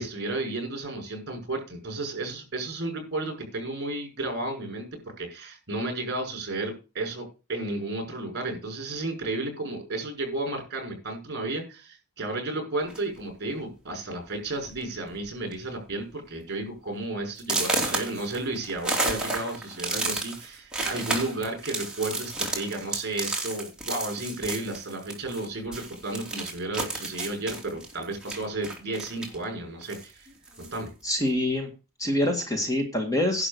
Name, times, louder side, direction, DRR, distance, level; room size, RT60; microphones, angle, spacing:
voice 1, 0.0-4.9 5.2-30.3 30.6-30.9, right 2 dB, 50° right, 3 dB, 5.9 m, -33 dB
sound 1, 12.9-13.2 14.0-14.1 14.5-14.8 15.1-15.5 15.9-16.0 16.5-16.6 17.4-25.5 25.7-29.4 29.8-30.8, right 2 dB, 5° right, 3.0 m, -32 dB
voice 2, 31.0-31.7 32.0-33.5, left 1 dB, 15° left, 4 dB, 2.0 m, -25 dB
11.0 x 6.2 x 6.9 m, 0.31 s
head